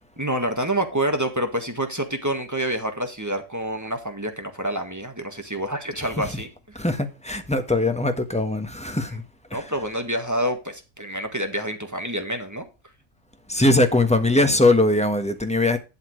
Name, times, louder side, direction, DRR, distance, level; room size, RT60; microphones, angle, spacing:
voice 1, 0.2-6.5 9.5-12.7 13.6-13.7, right 1 dB, 15° right, 1.6 m, -27 dB
voice 2, 6.7-9.2 9.5-9.6 13.5-15.8, left 2 dB, 5° left, 1.2 m, -21 dB
11.5 x 7.2 x 3.2 m
omnidirectional pair, 1.3 m